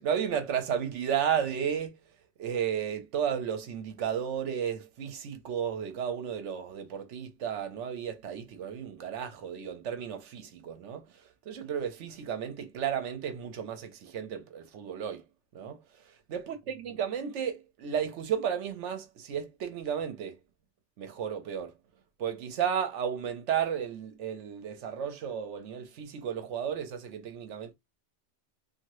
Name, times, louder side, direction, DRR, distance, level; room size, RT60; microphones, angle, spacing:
voice 1, 0.0-2.0 2.4-11.0 11.5-15.2 15.5-15.8 16.3-20.4 21.0-21.7 22.2-27.7, right 8 dB, 75° right, 1.0 m, -33 dB
2.7 x 2.5 x 3.0 m
omnidirectional pair, 1.2 m